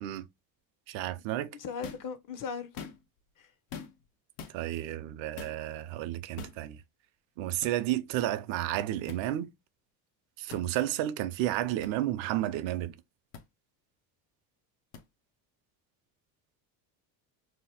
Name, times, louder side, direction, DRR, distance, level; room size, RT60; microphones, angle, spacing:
voice 1, 0.9-1.6 4.5-6.8 7.4-9.5 10.4-13.0, right 13 dB, 65° right, 0.6 m, -32 dB
voice 2, 1.5-2.8 3.4-3.5, left 6 dB, 40° left, 0.6 m, -38 dB
sound 1, 1.8-2.1 2.6-3.2 3.7-4.1 4.4-4.6 5.4-5.6 6.4-6.6 7.6-7.8 9.1-9.2 10.5-10.7 11.8-11.9 13.3-13.4 14.9-15.0, left 6 dB, 80° left, 0.8 m, -43 dB
2.9 x 2.1 x 3.4 m
supercardioid pair, 85°, 49 cm